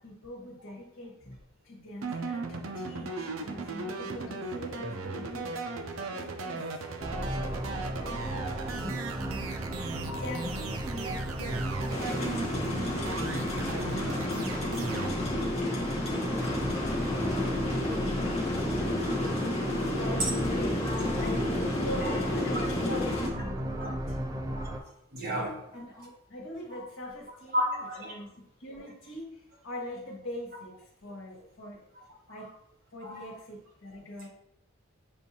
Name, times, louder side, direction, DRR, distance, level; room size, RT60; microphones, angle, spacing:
voice 1, 0.0-6.9 7.9-9.7 10.1-12.4 12.8-14.2 16.0-20.8 21.2-24.2 25.7-27.7 28.0-30.7 31.0-31.8 32.3-32.5 32.9-34.3, left 1 dB, 70° left, -2 dB, 1.3 m, -43 dB
sound 1, 2.0-15.1, right 3 dB, 90° right, 0.6 m, -37 dB
sound 2, 7.0-24.8, right 1 dB, 15° right, 0.3 m, -35 dB
sound 3, 11.9-23.3, left 1 dB, 30° left, 0.8 m, -31 dB
voice 2, 20.8-21.2 22.0-22.2 23.8-23.9 24.5-25.7 26.7-26.8 27.5-28.1 32.0-32.1 33.0-33.3, equal, 45° right, -3 dB, 1.4 m, -33 dB
6.6 x 2.6 x 2.7 m, 0.75 s
head